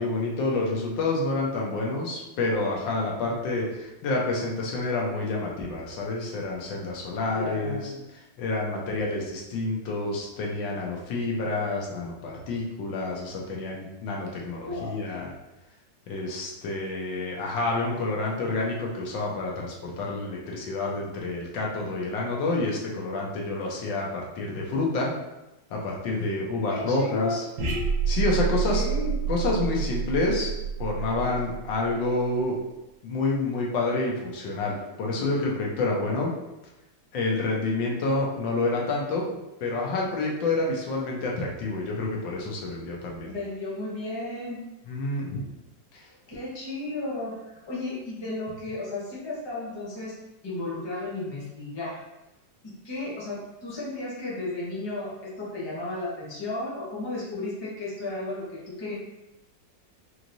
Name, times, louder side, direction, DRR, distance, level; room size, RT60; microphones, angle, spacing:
voice 1, 0.0-7.9 8.4-15.3 16.1-25.1 25.7-27.4 28.1-28.8 29.3-30.5 30.8-32.5 33.0-36.3 37.1-43.3 44.9-45.5 45.9-46.0, left 2 dB, 85° left, -2 dB, 1.6 m, -28 dB
voice 2, 7.3-8.0 14.6-15.0 26.6-27.3 28.7-29.1 43.3-44.6 46.3-50.1 50.4-52.0 52.6-58.9, left 2 dB, 20° left, -7 dB, 0.9 m, -34 dB
sound 1, 27.6-32.2, right 6 dB, 65° right, 1.3 m, -28 dB
4.8 x 3.1 x 2.6 m, 0.96 s
omnidirectional pair, 2.0 m